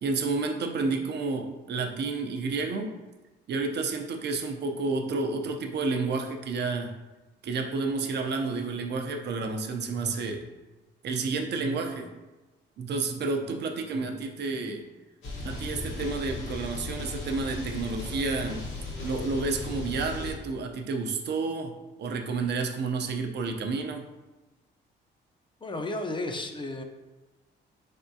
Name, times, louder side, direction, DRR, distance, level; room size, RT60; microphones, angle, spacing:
voice 1, 0.0-2.9 3.5-6.9 7.4-10.4 11.0-12.1 12.8-14.8 15.4-18.6 19.0-21.7 22.0-24.0, right 3 dB, 60° right, 4 dB, 0.6 m, -30 dB
sound 1, 15.2-20.3, left 2 dB, 75° left, 1.3 m, -36 dB
voice 2, 25.6-26.8, left 2 dB, 25° left, 4 dB, 0.5 m, -33 dB
4.1 x 3.5 x 2.7 m, 1.2 s
cardioid pair, 90°, 20 cm